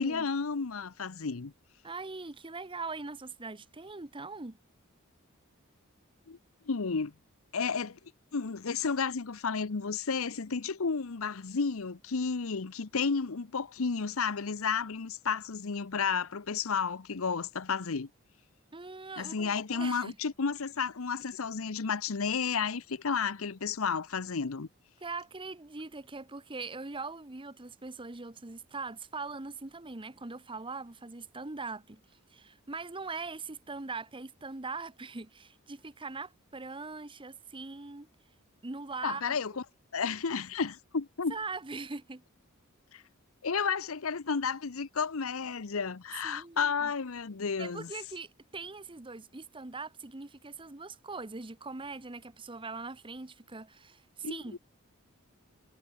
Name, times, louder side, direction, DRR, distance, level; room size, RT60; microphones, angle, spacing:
voice 1, 0.0-1.5 6.3-6.4 6.7-7.1 7.5-8.0 8.3-18.1 19.2-24.7 39.0-39.6 39.9-41.3 42.9-43.0 43.4-47.9 54.2-54.6, left 5 dB, 70° left, 0.8 m, -32 dB
voice 2, 1.8-4.6 18.7-20.2 25.0-32.0 32.3-38.1 38.6-39.6 41.3-42.2 46.2-46.9 47.6-54.6, right 3 dB, 25° right, 1.1 m, -41 dB
head